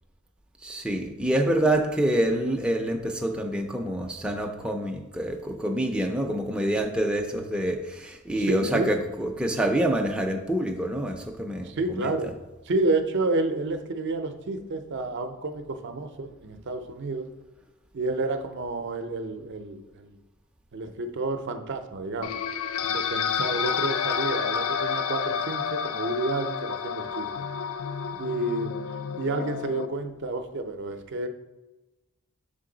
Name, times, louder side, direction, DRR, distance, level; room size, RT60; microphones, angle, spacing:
voice 1, 0.6-11.7 12.0-12.1, right 1 dB, 5° right, 2 dB, 0.4 m, -26 dB
voice 2, 8.4-8.9 11.6-12.3 12.7-17.3 17.9-20.2 20.7-22.4 22.8-27.5 28.2-28.7 29.2-31.3, right 2 dB, 55° right, 8 dB, 0.5 m, -30 dB
sound 1, 22.2-29.9, left 7 dB, 70° left, 0.4 m, -30 dB
6.7 x 3.8 x 3.8 m, 1.1 s
head